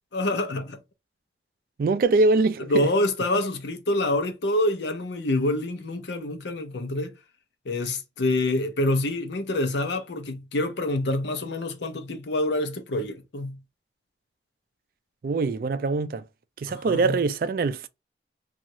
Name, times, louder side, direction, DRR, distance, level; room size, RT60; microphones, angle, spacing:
voice 1, 0.1-0.8 2.7-7.1 7.7-13.6 16.7-17.2, left 1 dB, 85° left, 0.7 m, -26 dB
voice 2, 1.8-2.9 15.2-16.2 16.6-17.9, right 3 dB, 55° right, 0.3 m, -23 dB
3.0 x 2.4 x 2.6 m
head